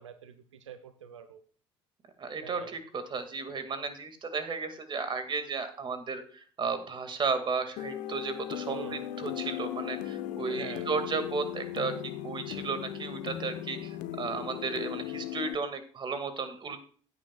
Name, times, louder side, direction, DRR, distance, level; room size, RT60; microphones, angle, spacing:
voice 1, 0.0-1.4 2.4-2.7 8.7-9.0 10.5-10.9, right 8 dB, 75° right, 10 dB, 0.7 m, -44 dB
voice 2, 2.2-16.8, right 4 dB, 30° right, 9 dB, 2.0 m, -34 dB
sound 1, 7.8-15.6, left 12 dB, 55° left, 0.9 m, -37 dB
16.0 x 9.3 x 2.3 m, 0.43 s
figure-of-eight pair, 60°, 15 cm